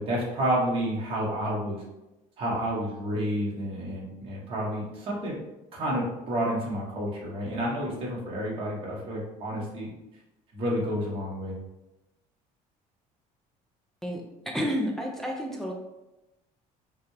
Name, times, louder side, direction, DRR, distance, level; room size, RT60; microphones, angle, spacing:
voice 1, 0.0-1.8 2.4-5.3 5.7-9.9 10.5-11.5, equal, 35° right, -4 dB, 1.3 m, -30 dB
voice 2, 14.5-15.7, equal, ahead, -1 dB, 0.4 m, -30 dB
5.8 x 2.4 x 3.2 m, 0.97 s
cardioid pair, 170°, 15 cm